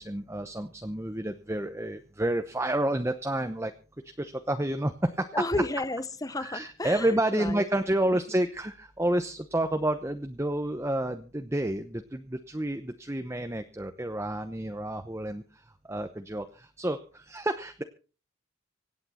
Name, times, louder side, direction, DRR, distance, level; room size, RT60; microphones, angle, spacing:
voice 1, 0.0-3.7 4.0-5.4 6.4-17.8, right 1 dB, 15° right, 0.9 m, -30 dB
voice 2, 5.3-7.6, left 2 dB, 15° left, 0.9 m, -32 dB
25.5 x 8.7 x 4.3 m
head